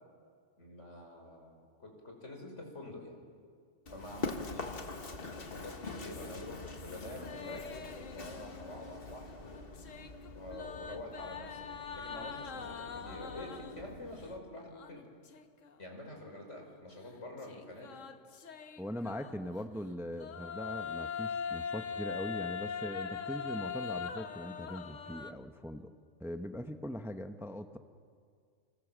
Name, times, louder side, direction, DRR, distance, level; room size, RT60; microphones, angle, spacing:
voice 1, 0.6-3.2 3.9-4.8 5.3-9.7 10.3-15.1 15.8-18.0, left 1 dB, 70° left, 2 dB, 5.5 m, -47 dB
Run, 3.9-14.4, left 3 dB, 50° left, 1.7 m, -45 dB
sound 1, 6.1-9.0 9.3-14.0 14.7-15.7 16.1-16.2 17.4-19.6 20.1-25.3, left 6 dB, 90° left, 1.5 m, -42 dB
voice 2, 18.8-25.9 26.2-27.8, equal, ahead, 7 dB, 0.9 m, -41 dB
29.5 x 25.5 x 7.5 m, 2.1 s
omnidirectional pair, 1.3 m